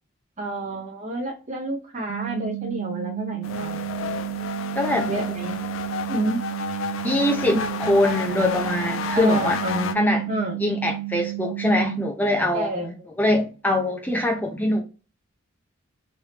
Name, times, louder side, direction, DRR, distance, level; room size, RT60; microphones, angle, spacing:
voice 1, 0.4-3.8 5.1-5.6 6.1-6.4 7.5-7.8 9.1-10.6 12.5-13.1, right 1 dB, 35° right, 0.7 m, -29 dB
sound 1, 2.1-12.1, right 22 dB, 70° right, 0.5 m, -32 dB
sound 2, 3.4-9.9, left 6 dB, 75° left, 0.4 m, -31 dB
voice 2, 4.8-5.1 7.0-9.6 9.9-10.2 10.6-12.7 13.2-14.8, left 1 dB, 10° left, 0.5 m, -23 dB
3.2 x 2.6 x 3.2 m
head